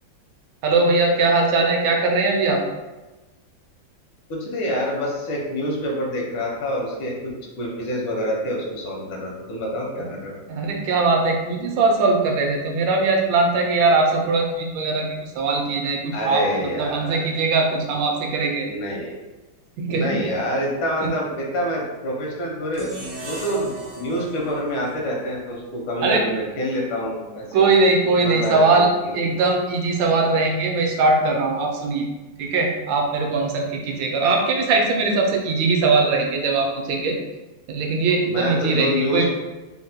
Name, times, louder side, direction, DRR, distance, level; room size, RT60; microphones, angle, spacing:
voice 1, 0.6-2.6 10.5-18.7 19.8-20.2 21.0-21.1 26.0-26.2 27.5-32.1 32.4-37.2 37.7-39.3, right 3 dB, 75° right, 2 dB, 1.2 m, -20 dB
voice 2, 4.3-7.1 7.6-10.4 16.1-17.2 18.7-19.2 19.9-22.9 23.2-27.7 28.2-29.3 38.2-39.3, equal, 85° left, -2 dB, 1.6 m, -27 dB
sound 1, 22.7-25.9, right 3 dB, 55° right, 0.7 m, -37 dB
3.9 x 2.2 x 2.7 m, 1.1 s
omnidirectional pair, 2.2 m